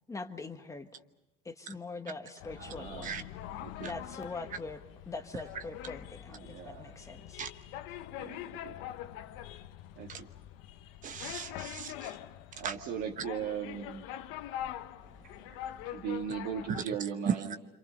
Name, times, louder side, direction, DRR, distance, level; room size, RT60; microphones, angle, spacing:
voice 1, 0.1-0.9 1.4-3.2 3.8-4.8 5.1-7.4, left 3 dB, 15° left, 6 dB, 1.5 m, -42 dB
sound 1, 2.4-16.8, left 12 dB, 70° left, 1.1 m, -44 dB
voice 2, 2.6-3.2 3.6-3.9 6.3-6.9 8.2-8.8 10.0-10.3 12.5-14.1 15.9-17.6, right 7 dB, 70° right, -2 dB, 2.4 m, -38 dB
voice 3, 11.0-12.2 12.6-12.8 15.5-15.6 16.7-16.9 17.3-17.6, right 7 dB, 40° right, 9 dB, 1.1 m, -36 dB
27.0 x 27.0 x 5.4 m, 0.93 s
cardioid pair, 125°, 21 cm